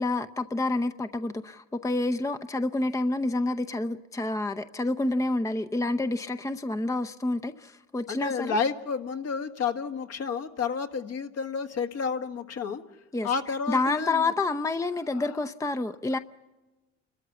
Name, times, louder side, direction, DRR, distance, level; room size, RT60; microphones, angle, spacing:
voice 1, 0.0-8.6 13.1-16.2, left 2 dB, 10° left, 0.7 m, -28 dB
voice 2, 8.1-12.8 13.2-14.2 15.2-15.3, left 5 dB, 55° left, 1.6 m, -30 dB
29.5 x 13.5 x 7.0 m
supercardioid pair, 80°, 31 cm